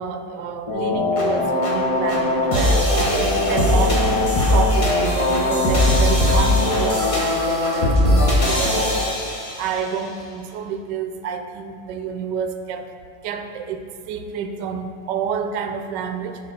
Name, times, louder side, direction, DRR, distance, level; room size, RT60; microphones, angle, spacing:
voice 1, 0.0-4.0 4.5-9.2 9.6-12.9 13.2-13.8 14.1-16.4, right 6 dB, 80° right, 7 dB, 1.2 m, -29 dB
sound 1, 0.7-9.9, left 1 dB, 20° left, 1.0 m, -19 dB
11.5 x 4.3 x 4.2 m, 2.2 s
omnidirectional pair, 1.9 m